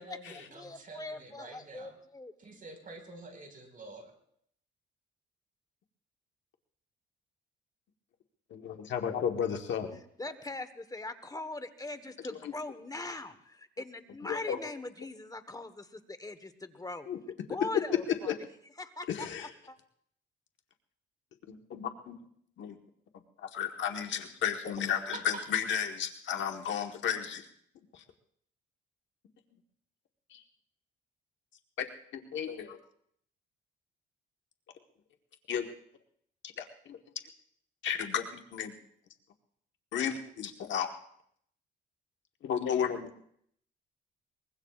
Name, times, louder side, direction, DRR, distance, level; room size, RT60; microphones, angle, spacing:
voice 1, 0.0-1.9 2.4-4.1 24.7-24.9 25.1-25.6, right 3 dB, 45° right, 4 dB, 4.8 m, -47 dB
voice 2, 0.5-2.3 10.2-17.1 17.5-18.4 18.8-19.8, left 2 dB, 20° left, 10 dB, 1.2 m, -41 dB
voice 3, 8.5-10.0 12.4-12.5 14.3-14.6 17.1-17.2 18.3-18.4 19.1-19.5 21.5-22.2 22.6-22.8 23.4-27.4 27.9-28.0 30.3-30.4 31.8-31.9 32.1-32.8 35.5-35.7 36.6-37.0 37.8-38.7 39.9-40.9 42.4-43.1, left 8 dB, 70° left, 5 dB, 1.3 m, -33 dB
23.5 x 21.5 x 2.4 m, 0.68 s
cardioid pair, 90°, 20 cm